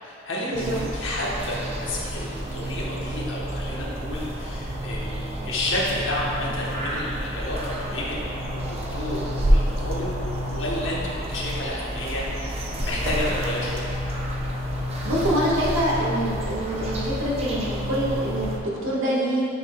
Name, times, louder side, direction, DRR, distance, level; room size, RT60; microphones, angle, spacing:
voice 1, 0.0-8.6 8.9-10.2 10.4-11.0 11.3-13.9, left 1 dB, 65° left, -5 dB, 1.1 m, -31 dB
sound 1, 0.5-18.6, equal, 30° right, 0.6 m, -29 dB
voice 2, 15.0-19.4, right 1 dB, 75° right, -6 dB, 1.4 m, -25 dB
8.7 x 4.8 x 2.2 m, 2.6 s
head